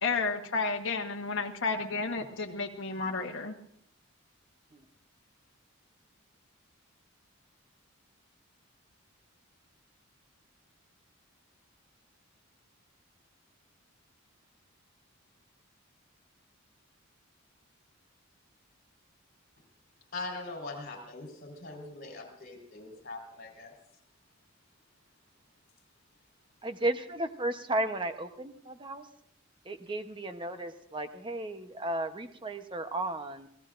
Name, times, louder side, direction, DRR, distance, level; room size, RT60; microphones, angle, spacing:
voice 1, 0.0-3.5, left 4 dB, 60° left, 1 dB, 1.2 m, -32 dB
voice 2, 20.1-23.7, left 3 dB, 45° left, 2 dB, 4.3 m, -41 dB
voice 3, 26.6-29.1 29.6-33.5, right 2 dB, 25° right, 8 dB, 0.9 m, -34 dB
27.5 x 17.5 x 2.5 m, 0.67 s
head